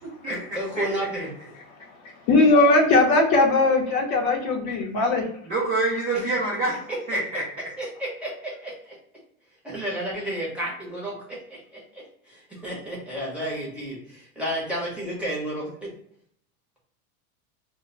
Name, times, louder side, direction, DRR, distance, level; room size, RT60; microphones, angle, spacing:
voice 1, 0.3-1.3 6.1-6.2 6.9-7.2 7.8-9.0 9.6-15.9, right 1 dB, 5° right, -5 dB, 0.7 m, -32 dB
voice 2, 2.0-5.3, left 2 dB, 45° left, 0 dB, 0.7 m, -19 dB
voice 3, 5.5-7.4, right 2 dB, 20° right, -6 dB, 0.4 m, -26 dB
2.1 x 2.1 x 3.7 m, 0.67 s
supercardioid pair, 150°, 43 cm